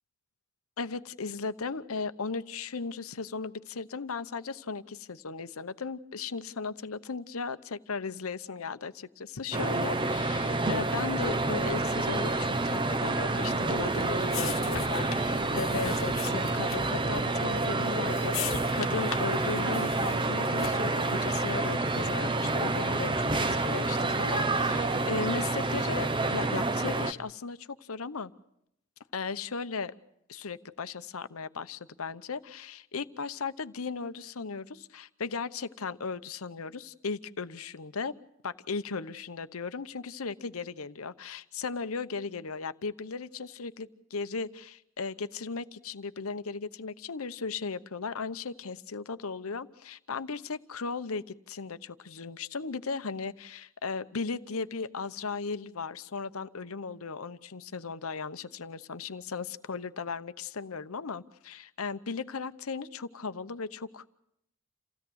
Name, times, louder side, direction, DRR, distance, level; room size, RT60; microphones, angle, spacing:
voice 1, 0.8-28.3 29.1-29.9 30.3-38.1 38.4-64.1, left 4 dB, 85° left, 13 dB, 0.9 m, -36 dB
sound 1, 9.5-27.1, right 2 dB, 25° right, 0.8 m, -28 dB
sound 2, 13.5-21.0, left 9 dB, 70° left, 1.3 m, -40 dB
28.5 x 16.5 x 8.0 m, 0.77 s
head